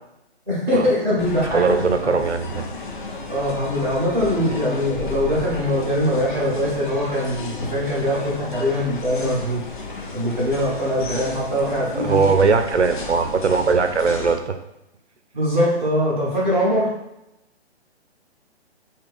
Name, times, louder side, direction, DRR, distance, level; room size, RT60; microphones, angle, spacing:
voice 1, 0.5-2.1 3.3-9.6 10.1-12.3 15.3-16.9, equal, ahead, -10 dB, 0.5 m, -22 dB
sound 1, 1.2-14.4, left 3 dB, 50° left, 0.5 m, -33 dB
voice 2, 1.5-2.7 12.0-14.6, right 5 dB, 90° right, 7 dB, 0.5 m, -20 dB
2.8 x 2.5 x 3.4 m, 0.88 s
figure-of-eight pair, 135°, 33 cm